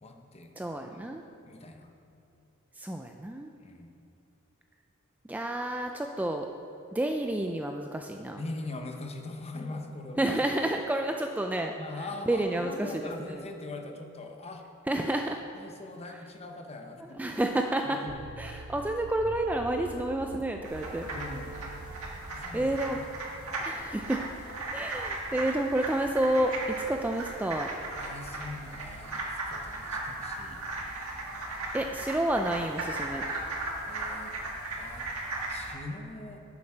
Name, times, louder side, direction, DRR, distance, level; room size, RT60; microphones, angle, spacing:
voice 1, 0.0-0.5 0.8-1.1 1.5-1.9 3.6-3.9 8.4-10.3 11.8-14.6 15.5-17.2 17.9-18.2 19.9-20.0 21.1-21.6 22.3-23.0 28.0-30.6 33.9-34.3 34.8-35.1 35.5-36.4, left 2 dB, 30° left, 4 dB, 0.9 m, -41 dB
voice 2, 0.6-1.2 2.7-3.5 5.3-6.5 6.9-8.4 10.2-13.5 14.9-15.4 16.1-16.2 17.0-18.0 18.4-21.1 22.5-23.0 23.6-24.3 24.6-27.7 31.7-33.3, right 1 dB, 5° right, 4 dB, 0.3 m, -30 dB
sound 1, 18.1-23.0, right 3 dB, 60° right, 0.6 m, -45 dB
sound 2, 20.6-35.7, right 2 dB, 80° right, 1.7 m, -37 dB
11.0 x 7.2 x 4.4 m, 2.8 s
head